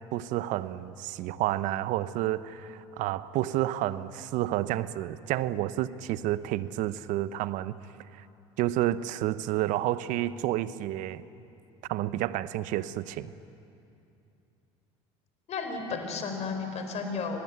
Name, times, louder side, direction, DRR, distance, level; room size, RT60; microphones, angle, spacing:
voice 1, 0.0-7.8 8.6-11.2 11.9-13.3, right 14 dB, 65° right, 15 dB, 0.9 m, -30 dB
voice 2, 15.5-17.4, left 4 dB, 50° left, 5 dB, 4.7 m, -33 dB
25.5 x 19.5 x 9.4 m, 2.7 s
hypercardioid pair, 70°, 14 cm